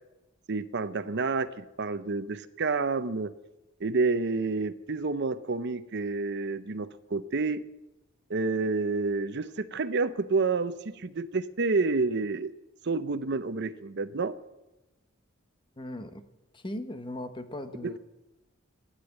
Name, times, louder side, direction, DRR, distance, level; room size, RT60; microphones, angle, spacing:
voice 1, 0.5-3.3 3.8-7.6 8.3-12.5 12.8-14.3 17.8-18.0, right 3 dB, 60° right, 13 dB, 0.7 m, -29 dB
voice 2, 15.8-16.2 16.5-18.0, left 1 dB, 25° left, 9 dB, 1.0 m, -38 dB
13.0 x 9.8 x 8.9 m, 0.99 s
head